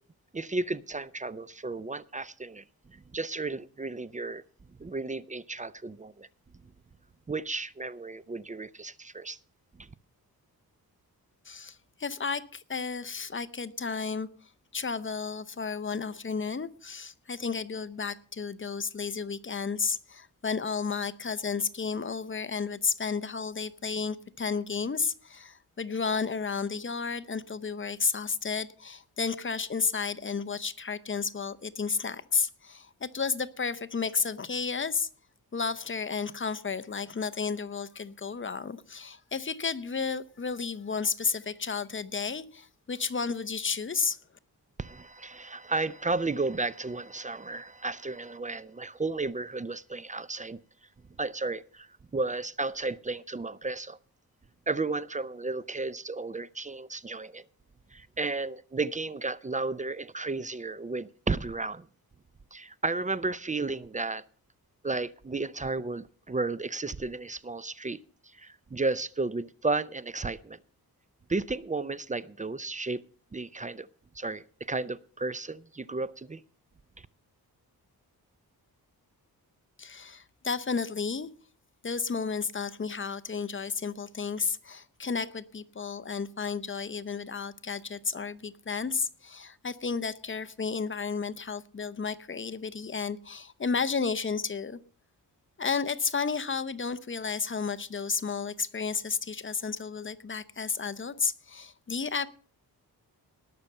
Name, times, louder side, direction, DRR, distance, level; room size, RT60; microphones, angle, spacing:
voice 1, 0.3-4.4 4.7-6.3 7.3-9.4 9.8-9.9 44.8-50.6 51.2-54.0 54.7-57.5 57.9-61.9 62.5-64.2 64.8-70.6 71.3-73.0 73.3-73.9 74.1-76.4 77.0-77.1, right 3 dB, 20° right, 0.5 m, -33 dB
voice 2, 11.4-14.3 14.7-35.1 35.5-44.2 79.8-81.3 81.8-94.8 95.6-102.3, left 5 dB, 30° left, 0.7 m, -32 dB
19.0 x 6.6 x 5.5 m
wide cardioid pair, 95°, 38 cm